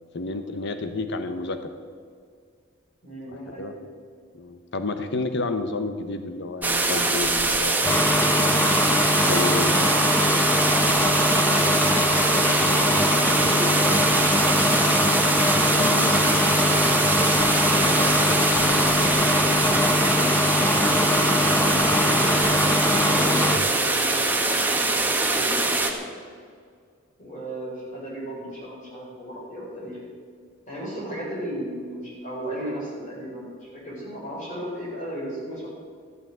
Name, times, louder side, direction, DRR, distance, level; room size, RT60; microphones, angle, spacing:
voice 1, 0.1-1.7 3.3-3.7 4.3-8.5 9.1-9.7 15.8-15.9, left 3 dB, 60° left, 8 dB, 0.9 m, -30 dB
voice 2, 3.0-3.7 12.0-14.1 14.7-16.7 17.4-18.3 18.5-19.6 20.5-22.0 22.8-26.0 27.2-30.0 30.7-35.7, equal, 40° left, -6 dB, 5.3 m, -36 dB
sound 1, 6.6-25.9, right 2 dB, 10° right, 1.4 m, -23 dB
sound 2, 7.8-23.6, left 1 dB, 10° left, 0.9 m, -22 dB
14.0 x 8.8 x 9.3 m, 2.1 s
head